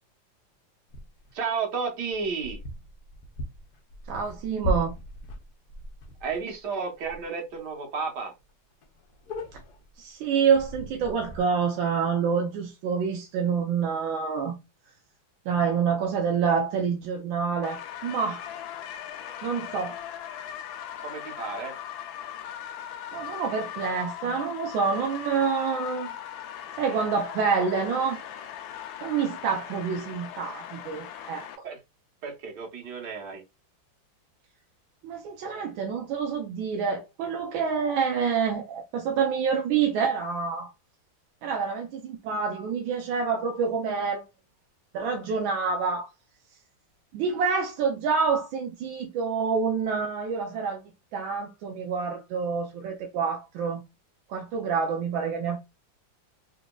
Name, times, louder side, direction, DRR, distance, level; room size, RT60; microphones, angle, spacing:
sound 1, 0.9-1.4 2.1-6.6 7.0-7.2 7.5-7.6 8.1-8.2 8.4-8.5 8.8-9.9 10.5-11.4, equal, 65° left, 1.2 m, -37 dB
voice 1, 1.3-2.6 6.2-8.3 21.0-21.7 31.6-31.8 32.2-33.4, right 5 dB, 60° right, 1.6 m, -32 dB
voice 2, 4.1-4.9 10.0-14.6 15.5-18.4 19.4-20.0 23.1-26.1 26.8-28.2 29.0-31.5 35.0-40.7 41.4-44.2 44.9-46.1 47.1-50.8 51.1-53.8 54.3-55.7, right 6 dB, 80° right, 1.3 m, -27 dB
sound 2, 17.6-31.6, left 10 dB, 90° left, 1.4 m, -39 dB
4.0 x 2.9 x 2.2 m
omnidirectional pair, 2.1 m